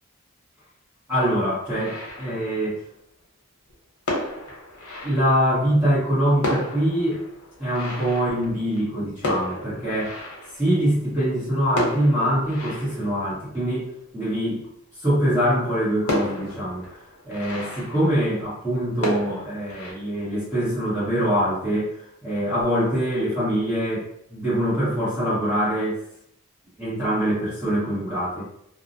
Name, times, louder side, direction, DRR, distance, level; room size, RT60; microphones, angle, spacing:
sound 1, 1.1-2.9 3.7-3.8 4.1-5.8 6.1-6.2 6.4-11.2 11.7-14.3 14.9-15.0 15.3-15.4 16.1-18.7 19.0-19.9, left 1 dB, 90° left, 0.8 m, -33 dB
voice 1, 1.1-2.8 5.0-7.2 7.6-10.1 10.5-14.6 15.0-16.8 17.2-24.0 24.3-26.0 26.8-28.4, equal, 10° right, -12 dB, 1.1 m, -24 dB
2.3 x 2.1 x 2.6 m, 0.75 s
head